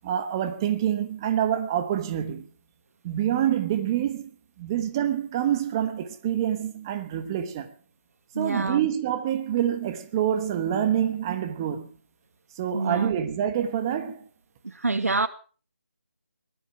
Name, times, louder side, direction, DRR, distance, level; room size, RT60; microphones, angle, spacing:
voice 1, 0.0-2.4 3.0-4.3 4.6-7.7 8.4-11.9 12.6-14.2, right 10 dB, 15° right, 1.2 m, -26 dB
voice 2, 8.3-8.9 12.7-13.1 14.8-15.3, right 3 dB, 85° right, 2.2 m, -26 dB
20.0 x 11.5 x 5.9 m
figure-of-eight pair, 170°, 8 cm